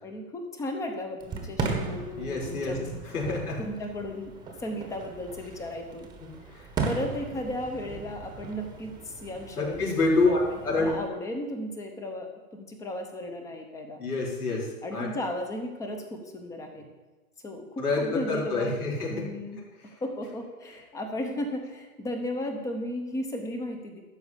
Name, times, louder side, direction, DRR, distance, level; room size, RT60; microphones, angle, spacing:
voice 1, 0.0-3.0 3.2-4.3 4.6-6.1 6.8-14.0 14.8-16.9 17.4-18.8 19.1-19.6 20.0-24.0, left 1 dB, 5° left, 5 dB, 0.7 m, -35 dB
Fireworks, 1.2-11.1, right 4 dB, 10° right, 1.0 m, -37 dB
voice 2, 2.2-2.8 3.1-3.6 6.2-6.6 9.6-10.9 14.0-14.7 14.9-15.1 17.8-19.2, left 3 dB, 90° left, -3 dB, 4.4 m, -27 dB
12.5 x 4.9 x 8.2 m, 1.2 s
hypercardioid pair, 140°, 44 cm